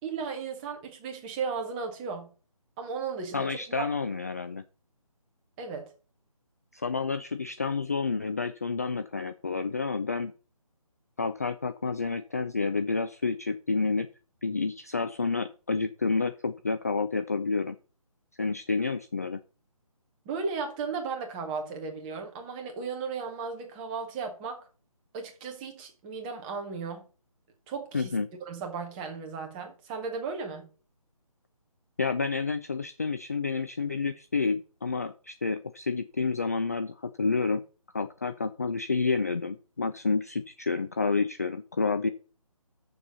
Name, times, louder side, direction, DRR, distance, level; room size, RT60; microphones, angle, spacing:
voice 1, 0.0-2.3 2.8-3.9 5.6-5.9 20.2-24.6 25.1-27.0 27.7-28.1 28.5-30.7, right 5 dB, 15° right, 1.7 m, -35 dB
voice 2, 3.3-4.6 6.7-10.3 11.2-14.1 14.4-17.8 18.4-19.4 27.9-28.3 32.0-37.6 37.9-42.1, left 4 dB, 25° left, 0.4 m, -29 dB
7.1 x 6.9 x 6.8 m
figure-of-eight pair, 155°, 19 cm